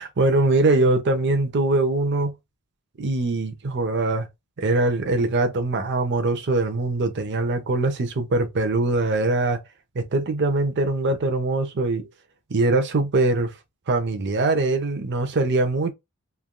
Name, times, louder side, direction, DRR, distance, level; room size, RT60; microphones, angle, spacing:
voice 1, 0.0-2.3 3.0-4.3 4.6-9.6 9.9-12.1 12.5-13.5 13.9-15.9, right 2 dB, 50° right, 0.6 m, -22 dB
3.3 x 2.4 x 2.2 m
head